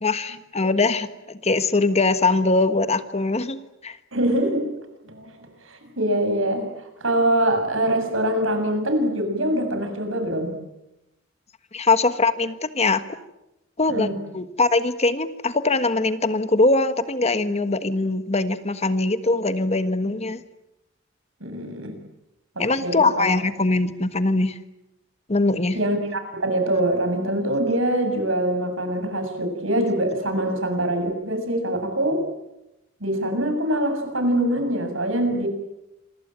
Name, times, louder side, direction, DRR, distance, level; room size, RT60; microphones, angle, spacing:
voice 1, 0.0-4.0 11.7-13.2 13.8-20.4 22.6-24.6 25.3-25.8, left 3 dB, 35° left, 11 dB, 1.4 m, -22 dB
voice 2, 4.1-4.7 5.1-5.3 5.6-6.7 7.0-10.6 13.9-14.2 21.4-21.9 22.6-23.2 25.7-32.2 33.0-35.5, right 1 dB, 75° right, 7 dB, 7.1 m, -24 dB
27.5 x 23.0 x 9.1 m, 0.91 s
head